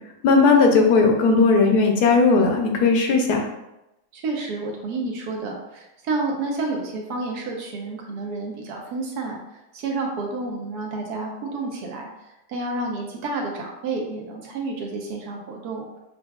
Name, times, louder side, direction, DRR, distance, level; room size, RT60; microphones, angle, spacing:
voice 1, 0.2-3.4, left 4 dB, 85° left, 3 dB, 1.2 m, -17 dB
voice 2, 4.1-15.9, right 3 dB, 85° right, 0 dB, 1.4 m, -30 dB
6.6 x 2.4 x 2.3 m, 0.91 s
omnidirectional pair, 1.6 m